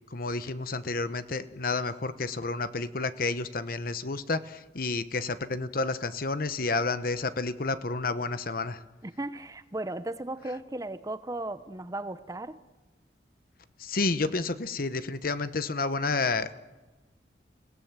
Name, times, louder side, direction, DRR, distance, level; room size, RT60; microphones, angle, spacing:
voice 1, 0.1-8.8 13.8-16.6, left 3 dB, 55° left, 13 dB, 1.0 m, -30 dB
voice 2, 9.0-12.6, right 2 dB, 20° right, 13 dB, 0.7 m, -36 dB
30.0 x 18.0 x 7.5 m, 1.2 s
head